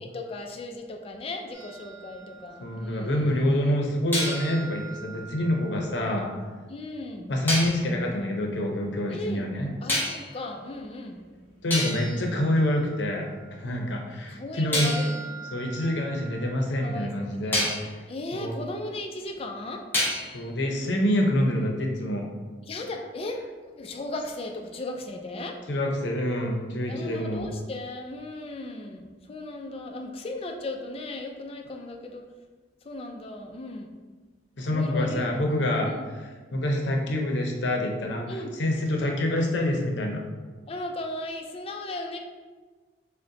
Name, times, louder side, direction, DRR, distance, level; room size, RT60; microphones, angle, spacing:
voice 1, 0.0-3.8 6.7-7.3 9.1-9.5 9.8-11.2 14.3-15.4 16.8-17.5 18.1-19.9 22.6-25.6 26.9-32.2 32.8-33.9 34.7-35.4 35.9-36.1 38.3-38.5 39.0-39.2 40.7-42.2, left 2 dB, 35° left, 3 dB, 0.4 m, -37 dB
sound 1, 1.5-2.9 4.1-6.2 7.5-7.9 9.9-10.4 11.2-11.3 11.7-13.3 14.7-16.9 17.5-17.9 19.9-20.5, left 1 dB, 10° left, 0.9 m, -32 dB
voice 2, 2.6-6.3 7.3-9.7 11.6-14.9 15.5-17.7 18.3-18.6 20.3-22.3 25.7-27.5 34.6-35.9 36.5-40.3, left 1 dB, 90° left, 1 dB, 0.6 m, -26 dB
6.4 x 2.1 x 2.6 m, 1.4 s
head